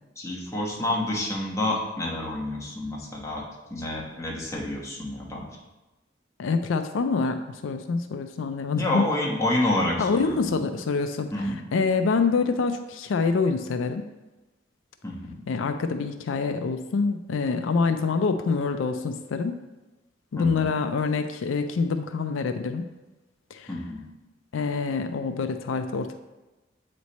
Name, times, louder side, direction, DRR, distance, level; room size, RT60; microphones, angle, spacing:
voice 1, 0.2-5.4 8.8-10.7 11.3-11.6 15.0-15.4 20.4-20.7 23.7-24.0, left 1 dB, 15° left, -3 dB, 1.2 m, -29 dB
voice 2, 6.4-9.1 10.0-11.3 11.7-14.0 15.5-19.6 20.3-22.9 23.5-23.7 24.5-26.1, left 4 dB, 85° left, 8 dB, 0.4 m, -26 dB
8.1 x 3.2 x 4.1 m, 1.1 s
head